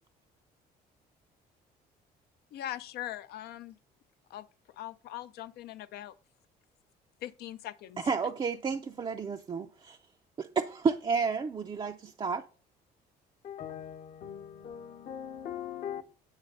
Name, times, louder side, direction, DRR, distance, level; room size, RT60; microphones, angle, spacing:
voice 1, 2.5-3.8 4.3-4.5 4.8-6.1 7.2-8.0, left 13 dB, 70° left, 0.5 m, -41 dB
voice 2, 8.0-10.0 10.4-12.4, right 5 dB, 30° right, 0.4 m, -31 dB
voice 3, 13.4-16.0, left 9 dB, 55° left, 0.9 m, -40 dB
8.9 x 3.2 x 5.2 m
cardioid pair, 110°, 17 cm